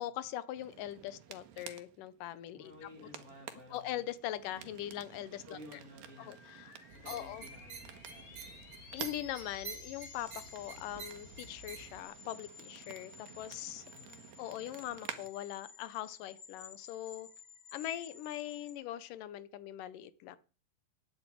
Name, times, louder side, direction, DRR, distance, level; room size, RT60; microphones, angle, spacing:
voice 1, 0.0-2.7 3.7-5.8 6.2-6.7 7.1-7.5 8.9-13.1 13.4-13.8 14.4-17.3 17.7-20.4, left 12 dB, 75° left, 2.3 m, -41 dB
sound 1, 0.5-15.3, right 10 dB, 80° right, 3.0 m, -52 dB
voice 2, 2.5-4.0 5.4-6.4 6.9-8.8 13.9-14.3, left 1 dB, 25° left, 2.9 m, -54 dB
sound 2, 5.8-18.7, left 6 dB, 45° left, 2.7 m, -54 dB
sound 3, 6.9-12.0, right 6 dB, 50° right, 1.4 m, -49 dB
9.7 x 7.6 x 9.1 m
omnidirectional pair, 4.1 m